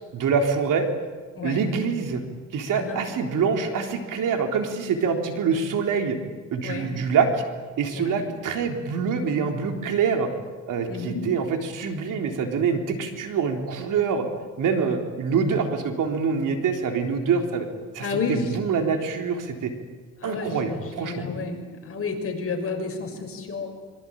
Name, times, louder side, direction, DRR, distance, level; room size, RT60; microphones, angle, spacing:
voice 1, 0.1-0.9 1.4-2.2 2.5-6.2 6.5-7.4 7.8-10.3 10.7-14.3 14.6-17.7 17.9-19.7 20.2-21.2, right 5 dB, 70° right, 4 dB, 3.8 m, -25 dB
voice 2, 1.4-1.7 2.7-3.0 6.6-6.9 7.9-8.2 10.9-11.3 18.0-18.6 20.2-23.7, left 4 dB, 45° left, 2 dB, 6.3 m, -31 dB
25.5 x 23.5 x 8.9 m, 1.4 s
cardioid pair, 115°, 33 cm